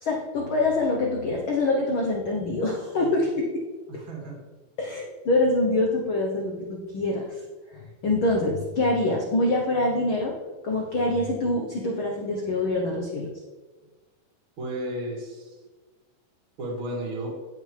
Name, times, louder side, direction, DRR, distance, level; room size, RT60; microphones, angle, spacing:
voice 1, 0.0-3.6 3.9-4.0 4.8-7.3 7.7-10.4 10.6-13.3, left 2 dB, 70° left, 0 dB, 1.2 m, -25 dB
voice 2, 3.9-4.4 14.6-15.6 16.6-17.3, right 1 dB, 40° right, -1 dB, 2.7 m, -33 dB
16.0 x 6.2 x 3.4 m, 1.3 s
omnidirectional pair, 3.9 m